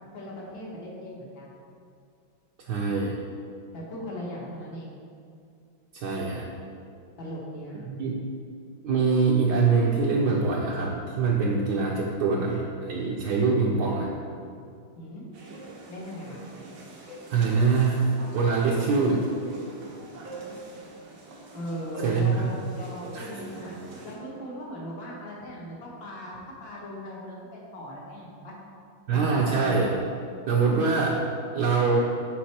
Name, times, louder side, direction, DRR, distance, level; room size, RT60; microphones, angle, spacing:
voice 1, 0.1-1.6 3.7-4.9 7.2-7.9 15.0-15.3 15.9-16.4 21.5-23.7 24.0-28.5 29.1-29.7, equal, 75° left, -4 dB, 2.2 m, -38 dB
voice 2, 2.6-3.2 5.9-6.5 7.9-8.1 8.8-14.1 17.3-18.1 18.3-19.3 22.0-22.5 23.1-23.3 29.1-29.9 30.5-31.2 31.5-32.0, right 4 dB, 65° right, -3 dB, 1.2 m, -24 dB
sound 1, 15.3-24.1, right 2 dB, 90° right, 2.1 m, -43 dB
8.2 x 4.9 x 4.3 m, 2.4 s
omnidirectional pair, 2.2 m